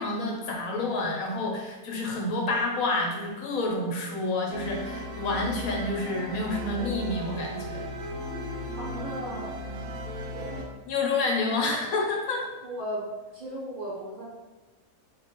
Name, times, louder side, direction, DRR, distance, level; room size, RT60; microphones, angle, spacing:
voice 1, 0.0-7.8 10.8-12.4, left 2 dB, 75° left, 0 dB, 1.2 m, -29 dB
sound 1, 4.5-10.6, equal, 75° right, 1.0 m, -36 dB
voice 2, 8.8-9.5 10.3-10.7 12.6-13.1 13.3-14.2, right 1 dB, 35° right, -7 dB, 1.1 m, -36 dB
4.2 x 2.6 x 2.9 m, 1.2 s
omnidirectional pair, 1.5 m